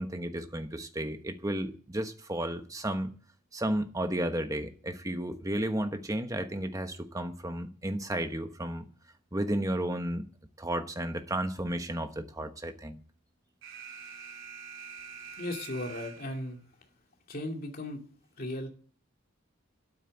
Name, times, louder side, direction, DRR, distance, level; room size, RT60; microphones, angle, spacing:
voice 1, 0.0-3.1 3.5-8.8 9.3-10.2 10.6-13.0, right 1 dB, 15° right, 1.1 m, -33 dB
Alarm, 13.6-16.6, right 6 dB, 65° right, 3.6 m, -45 dB
voice 2, 15.4-16.6 17.3-18.0 18.4-18.7, left 1 dB, 45° left, 2.7 m, -36 dB
12.5 x 9.0 x 9.1 m
head